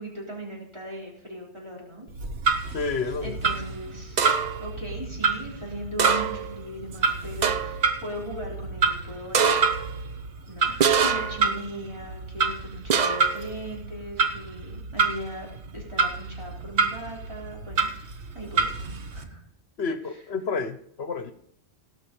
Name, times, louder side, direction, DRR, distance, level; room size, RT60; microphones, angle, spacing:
voice 1, 0.0-2.1 3.2-4.2 4.6-9.6 10.5-17.9 18.3-18.7 19.1-19.4 20.1-20.2, equal, 25° right, -3 dB, 4.0 m, -38 dB
Clock, 2.1-19.2, right 4 dB, 70° right, 1.4 m, -29 dB
voice 2, 2.7-3.3 19.8-21.3, left 4 dB, 65° left, 10 dB, 1.1 m, -30 dB
sound 1, 4.2-4.7 6.0-6.6 6.9-7.0 7.4-7.9 9.3-9.9 10.8-11.5 12.9-13.4, right 6 dB, 45° right, 0.7 m, -24 dB
17.0 x 6.4 x 5.4 m, 0.67 s
omnidirectional pair, 1.2 m